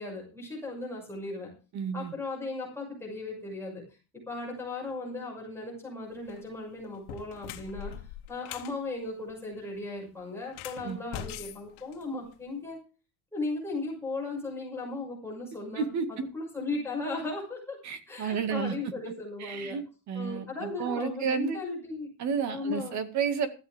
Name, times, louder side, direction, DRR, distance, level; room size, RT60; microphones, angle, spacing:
voice 1, 0.0-1.5 1.9-3.8 4.3-7.9 8.3-12.8 13.3-17.8 18.1-19.8 20.1-22.1 22.5-23.0, left 2 dB, 5° left, 6.3 m, -36 dB
voice 2, 1.7-2.1 10.8-11.0 15.8-16.1 17.8-18.8 19.4-21.6 22.2-23.5, right 6 dB, 40° right, 2.1 m, -31 dB
sound 1, 6.2-6.4 6.9-8.8 10.4-12.5, left 10 dB, 60° left, 2.1 m, -42 dB
16.0 x 14.0 x 3.5 m
cardioid pair, 180°, 45 cm